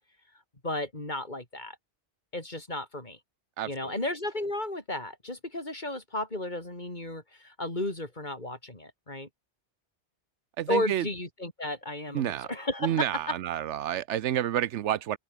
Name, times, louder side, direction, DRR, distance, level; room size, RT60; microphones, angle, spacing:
voice 1, 0.6-1.8 2.3-3.2 3.7-9.3 10.7-13.3, left 1 dB, 40° left, 4.4 m, -33 dB
voice 2, 3.6-3.9 10.6-11.0 12.1-12.5 12.8-15.2, right 11 dB, 90° right, 1.0 m, -29 dB
omnidirectional pair, 1.2 m